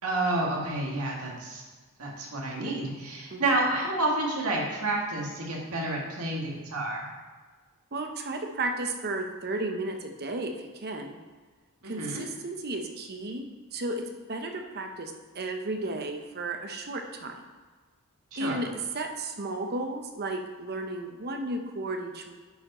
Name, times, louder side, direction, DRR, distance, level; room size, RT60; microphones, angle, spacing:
voice 1, 0.0-1.6 2.0-7.0 11.8-12.2 18.3-18.6, right 2 dB, 80° right, -2 dB, 2.0 m, -29 dB
voice 2, 7.9-11.2 11.8-14.0 14.3-17.3 18.4-22.3, right 2 dB, 45° right, 4 dB, 0.9 m, -34 dB
10.5 x 4.9 x 4.3 m, 1.4 s
head